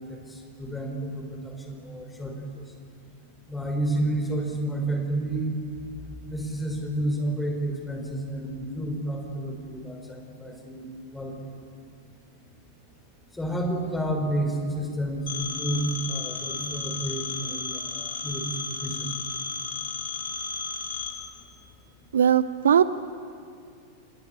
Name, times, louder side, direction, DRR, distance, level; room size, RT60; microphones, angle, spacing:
voice 1, 0.0-2.6 3.5-5.6 6.3-10.9 11.1-11.4 13.3-19.2, right 1 dB, 5° left, 3 dB, 4.8 m, -30 dB
Telephone, 15.3-21.1, left 5 dB, 65° left, 3.3 m, -33 dB
voice 2, 22.1-22.8, right 8 dB, 65° right, 15 dB, 0.6 m, -19 dB
29.0 x 19.0 x 8.5 m, 2.4 s
figure-of-eight pair, 90°, 0 cm